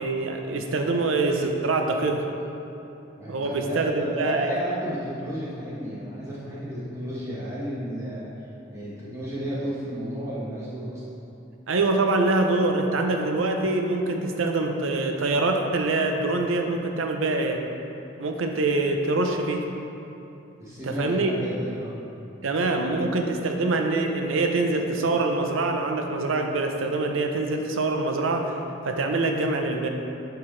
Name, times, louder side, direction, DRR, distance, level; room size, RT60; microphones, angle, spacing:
voice 1, 0.0-2.3 3.3-4.6 11.7-17.6 18.2-19.7 20.8-21.3 22.4-28.5 28.8-29.9, right 2 dB, 90° right, 3 dB, 0.6 m, -24 dB
voice 2, 3.2-8.3 8.7-11.0 20.6-22.0, right 1 dB, 15° right, -9 dB, 1.4 m, -32 dB
9.3 x 4.6 x 3.2 m, 2.9 s
head